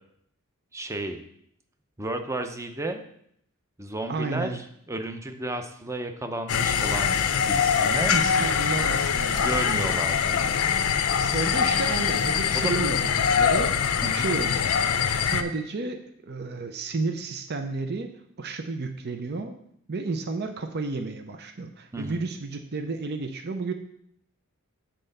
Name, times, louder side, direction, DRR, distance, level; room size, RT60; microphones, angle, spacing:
voice 1, 0.7-1.2 2.0-3.0 3.8-8.2 9.4-10.4 12.5-12.7 14.0-14.3 21.9-22.2, right 2 dB, 15° right, 6 dB, 0.7 m, -33 dB
voice 2, 4.1-4.6 8.1-9.5 11.3-13.7 14.1-14.7 15.2-18.1 18.4-19.5 19.9-23.7, right 3 dB, 50° right, 6 dB, 0.7 m, -31 dB
sound 1, 6.5-15.4, left 7 dB, 80° left, 0.6 m, -23 dB
7.8 x 4.4 x 6.6 m, 0.70 s
head